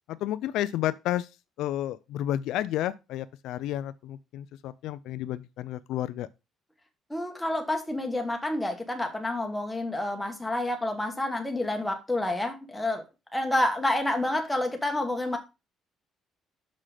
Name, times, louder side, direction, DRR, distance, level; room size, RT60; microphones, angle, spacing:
voice 1, 0.1-1.3 1.6-6.3, left 13 dB, 75° left, 0.4 m, -31 dB
voice 2, 7.1-13.0 13.3-15.4, left 1 dB, 5° left, 1.3 m, -29 dB
6.3 x 5.8 x 4.9 m
cardioid pair, 175°, 0 cm